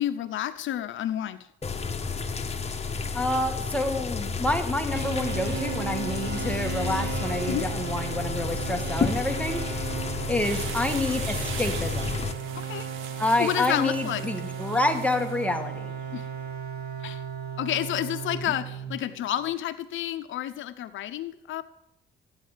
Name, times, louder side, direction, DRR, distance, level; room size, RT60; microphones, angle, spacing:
voice 1, 0.0-1.4 7.5-7.7 12.5-12.9 13.4-14.3 16.1-16.3 17.0-17.2 17.6-21.6, left 12 dB, 75° left, 11 dB, 0.8 m, -30 dB
sound 1, 1.6-12.3, left 5 dB, 30° left, 1.6 m, -31 dB
voice 2, 3.1-9.8 10.3-12.2 13.2-15.9, left 2 dB, 5° left, 5 dB, 1.9 m, -28 dB
sound 2, 4.9-19.4, right 8 dB, 55° right, 3.2 m, -35 dB
sound 3, 10.4-15.5, right 9 dB, 90° right, 1.3 m, -41 dB
14.0 x 9.6 x 7.3 m, 0.83 s
cardioid pair, 90°, 20 cm